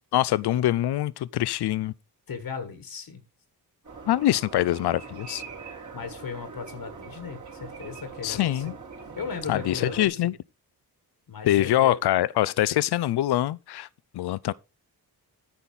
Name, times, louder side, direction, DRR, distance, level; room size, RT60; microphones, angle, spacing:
voice 1, 0.1-1.9 4.1-5.4 8.2-8.7 9.5-10.3 11.4-13.9 14.1-14.5, left 14 dB, 80° left, 0.5 m, -24 dB
voice 2, 2.3-3.2 5.9-8.6 9.2-10.2 11.3-12.0, left 6 dB, 60° left, 1.5 m, -36 dB
sound 1, 3.8-10.1, right 5 dB, 50° right, 3.4 m, -42 dB
10.0 x 4.0 x 7.1 m
wide cardioid pair, 100°, 39 cm